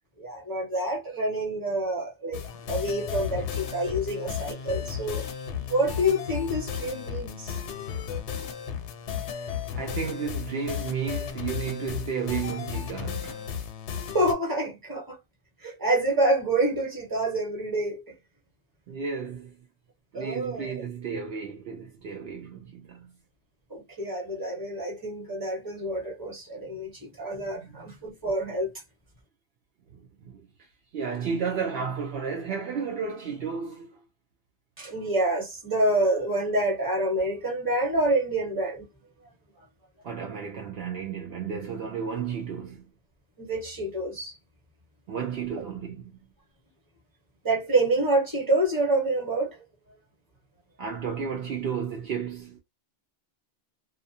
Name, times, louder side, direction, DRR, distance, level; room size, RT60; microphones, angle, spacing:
voice 1, 0.2-2.4 2.7-5.3 5.7-7.6 14.1-15.2 15.6-18.0 20.1-20.7 23.7-28.7 34.8-38.8 43.4-44.4 47.4-49.6, right 1 dB, 20° right, 1.0 m, -27 dB
sound 1, 2.3-14.3, left 7 dB, 85° left, 0.9 m, -34 dB
voice 2, 9.7-13.4 18.9-19.6 20.1-23.1 27.6-28.0 29.9-30.5 30.9-33.9 40.0-42.8 45.1-46.1 50.8-52.6, right 6 dB, 65° right, 0.8 m, -33 dB
2.4 x 2.3 x 2.6 m
omnidirectional pair, 1.1 m